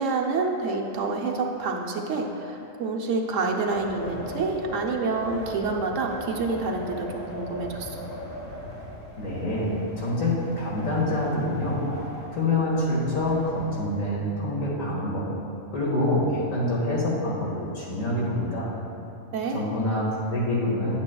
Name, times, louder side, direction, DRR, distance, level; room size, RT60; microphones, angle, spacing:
voice 1, 0.0-8.0 19.3-19.6, right 3 dB, 70° right, 1 dB, 1.1 m, -28 dB
Wind, 3.6-14.0, left 1 dB, 45° left, 1.5 m, -39 dB
voice 2, 9.2-11.9 12.3-15.3 15.7-18.7 19.5-21.0, left 1 dB, 80° left, -5 dB, 2.2 m, -26 dB
9.5 x 8.4 x 2.3 m, 2.8 s
omnidirectional pair, 1.4 m